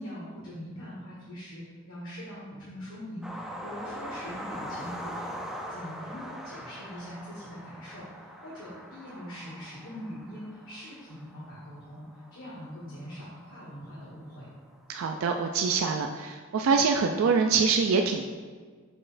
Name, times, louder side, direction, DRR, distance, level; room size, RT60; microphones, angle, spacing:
voice 1, 0.0-14.5, equal, 85° left, -7 dB, 1.5 m, -42 dB
sound 1, 3.2-14.3 15.3-15.4 15.7-15.8, equal, 5° right, 0.5 m, -42 dB
voice 2, 14.9-18.2, right 5 dB, 80° right, 4 dB, 0.4 m, -25 dB
6.4 x 6.2 x 2.5 m, 1.5 s
head